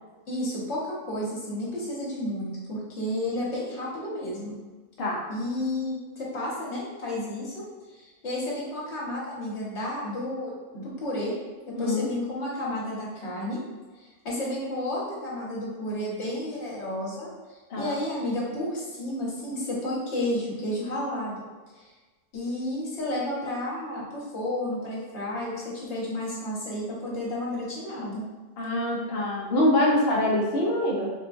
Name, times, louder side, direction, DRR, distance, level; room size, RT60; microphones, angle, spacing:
voice 1, 0.3-4.6 5.3-11.4 11.6-13.6 14.0-21.4 21.7-21.9 22.3-28.2, left 1 dB, 50° left, -6 dB, 1.2 m, -32 dB
voice 2, 11.7-12.1 17.7-18.0 28.6-31.1, left 1 dB, 75° left, -2 dB, 0.5 m, -24 dB
4.3 x 2.2 x 2.5 m, 1.3 s
omnidirectional pair, 1.7 m